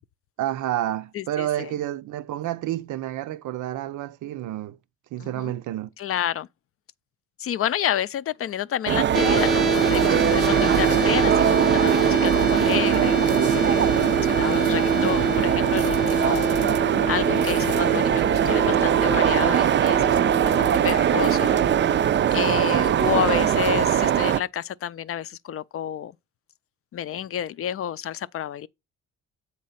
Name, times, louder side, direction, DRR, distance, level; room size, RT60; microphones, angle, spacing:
voice 1, 0.4-4.8 5.1-5.9 22.4-22.8, right 13 dB, 75° right, 0.6 m, -30 dB
voice 2, 1.1-1.7 5.2-5.5 6.0-6.5 7.4-13.2 13.5-16.7 17.1-20.2 20.4-21.6 22.3-26.1 26.9-28.7, left 10 dB, 50° left, 0.4 m, -30 dB
sound 1, 8.9-24.4, right 10 dB, 40° right, 0.4 m, -21 dB
sound 2, 9.1-23.1, right 2 dB, ahead, 0.8 m, -27 dB
7.5 x 4.1 x 5.6 m
cardioid pair, 90°, 30 cm